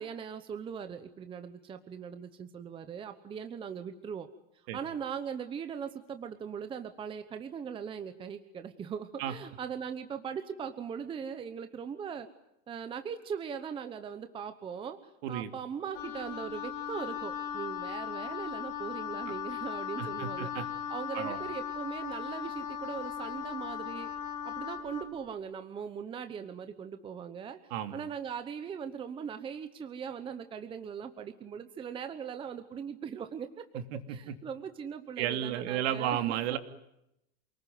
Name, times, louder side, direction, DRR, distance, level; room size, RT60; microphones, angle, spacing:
voice 1, 0.0-4.3 4.7-12.3 12.7-15.0 15.3-20.5 20.9-24.1 24.4-27.6 27.9-33.6 34.1-36.5, right 7 dB, 15° right, 9 dB, 1.0 m, -40 dB
Wind instrument woodwind instrument, 15.9-25.1, left 8 dB, 45° left, 4.8 m, -38 dB
voice 2, 20.0-20.6 21.1-21.4 27.7-27.9 33.9-34.0 35.2-36.6, right 11 dB, 60° right, 8 dB, 3.0 m, -32 dB
28.5 x 19.5 x 9.5 m, 0.82 s
supercardioid pair, 170°, 37 cm